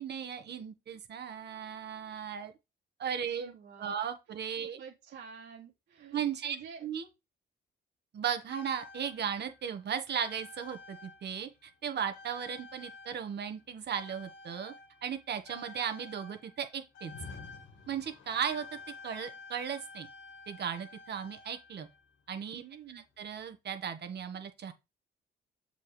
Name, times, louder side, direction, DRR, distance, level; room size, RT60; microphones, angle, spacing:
voice 1, 0.0-2.5 3.0-3.5 3.8-4.8 6.1-6.6 6.8-7.1 8.1-14.7 15.0-17.1 17.9-18.8 19.0-20.1 20.5-21.9 22.3-22.6 22.9-24.7, right 8 dB, 60° right, 1.4 m, -36 dB
voice 2, 3.2-4.0 4.6-6.9 22.6-23.0, right 7 dB, 75° right, 2.8 m, -49 dB
sound 1, 8.5-11.8 12.1-22.2 23.2-23.3, left 4 dB, 75° left, 1.5 m, -50 dB
7.2 x 5.5 x 3.2 m
cardioid pair, 90°, 20 cm